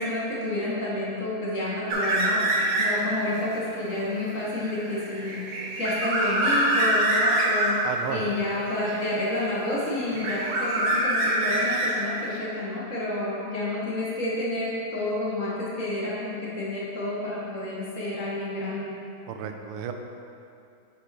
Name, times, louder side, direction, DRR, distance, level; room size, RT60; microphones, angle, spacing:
voice 1, 0.0-5.4 5.7-7.8 8.1-18.9, left 1 dB, 45° left, -6 dB, 1.2 m, -29 dB
sound 1, 1.9-3.2 3.6-7.9 8.9-9.7 9.9-12.4, right 1 dB, 60° right, 1.5 m, -25 dB
voice 2, 7.8-8.2 19.3-19.9, right 8 dB, 90° right, 5 dB, 1.5 m, -32 dB
6.8 x 5.0 x 4.6 m, 2.6 s
omnidirectional pair, 2.3 m